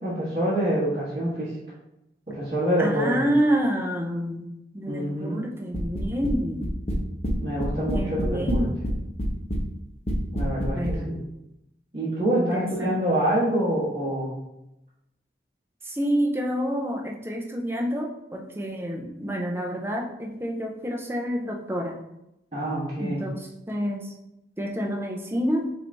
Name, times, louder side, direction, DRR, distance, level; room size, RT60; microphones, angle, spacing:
voice 1, 0.0-1.5 2.3-3.1 4.9-5.5 7.4-8.7 10.3-11.1 11.9-14.4 22.5-23.2, right 1 dB, 30° right, -10 dB, 1.3 m, -26 dB
voice 2, 2.8-4.5 4.7-6.7 7.9-8.8 10.8-11.2 12.3-13.0 15.8-22.0 23.0-24.1 24.6-25.7, equal, 15° right, 0 dB, 0.6 m, -28 dB
sound 1, 5.7-6.3 6.6-7.3 7.6-8.9 9.2-9.6 10.1-11.0, equal, 35° left, 0.8 m, -26 dB
5.9 x 2.7 x 3.4 m, 0.87 s
head